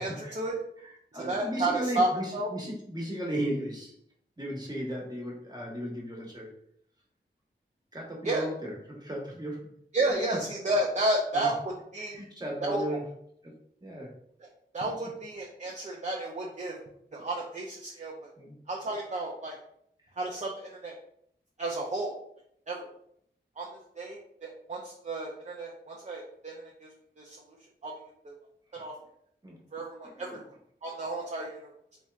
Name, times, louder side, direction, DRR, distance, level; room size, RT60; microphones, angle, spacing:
voice 1, 0.0-0.6 1.2-2.5 8.2-8.5 9.9-12.2 12.6-13.0 14.4-14.5 14.7-16.8 17.1-18.1 18.7-19.6 20.2-20.9 21.6-22.2 22.7-22.9 23.6-23.7 24.0-26.9 27.2-27.4 27.8-27.9 28.2-28.3 28.7-28.9 29.7-30.4 30.8-31.6, right 2 dB, 35° right, -2 dB, 0.6 m, -32 dB
voice 2, 0.8-3.9 4.4-6.5 7.9-9.7 11.3-11.5 12.1-13.1 13.4-13.5 13.8-14.1 14.8-14.9 17.9-18.0 18.4-18.6 28.7-28.8 29.4-29.6 30.1-30.4, right 1 dB, 20° right, -2 dB, 1.2 m, -36 dB
3.2 x 2.8 x 2.4 m, 0.69 s
cardioid pair, 40°, 20 cm